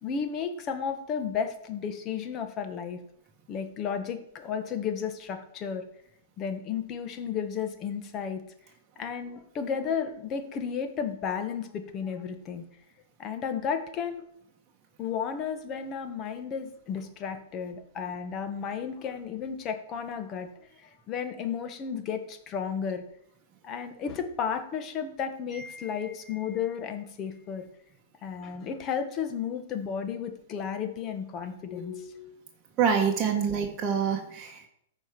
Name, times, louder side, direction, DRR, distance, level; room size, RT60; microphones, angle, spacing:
voice 1, 0.0-3.0 3.5-5.9 6.4-8.4 9.0-12.6 13.2-14.2 15.0-20.5 20.8-23.0 23.6-27.7 28.2-32.4, left 7 dB, 30° left, 8 dB, 1.5 m, -33 dB
voice 2, 25.5-26.1 32.8-34.7, right 7 dB, 25° right, -1 dB, 1.5 m, -27 dB
13.5 x 4.9 x 6.0 m, 0.74 s
hypercardioid pair, 135°, 0 cm